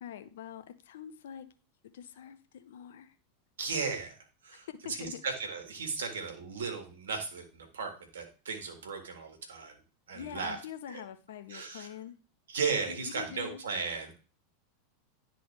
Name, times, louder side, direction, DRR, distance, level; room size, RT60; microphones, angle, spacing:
voice 1, 0.0-1.5 1.9-3.1 4.5-5.2 10.1-12.1 12.9-13.6, left 9 dB, 70° left, 10 dB, 0.6 m, -45 dB
voice 2, 3.6-4.1 4.4-4.7 5.0-9.7 10.1-10.6 10.9-11.0 11.5-11.9 12.5-14.1, right 5 dB, 80° right, 6 dB, 1.5 m, -36 dB
10.0 x 3.9 x 3.2 m, 0.35 s
hypercardioid pair, 95°, 0 cm